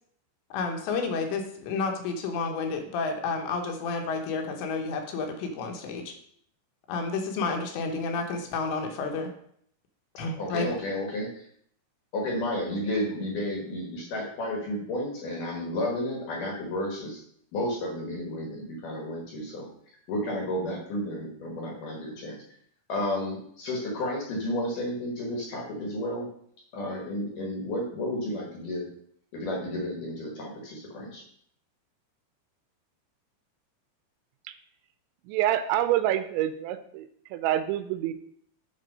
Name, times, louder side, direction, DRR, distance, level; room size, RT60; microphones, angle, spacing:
voice 1, 0.5-6.1 6.9-9.3 10.2-10.7, left 4 dB, 80° left, 4 dB, 3.2 m, -30 dB
voice 2, 10.4-11.5 12.1-17.2 17.5-19.7 20.1-22.4 22.9-26.3 26.7-28.9 29.3-31.2, left 1 dB, 60° left, -1 dB, 2.4 m, -32 dB
voice 3, 35.3-38.1, right 12 dB, 85° right, 11 dB, 2.9 m, -27 dB
10.0 x 3.8 x 5.3 m, 0.66 s
omnidirectional pair, 5.2 m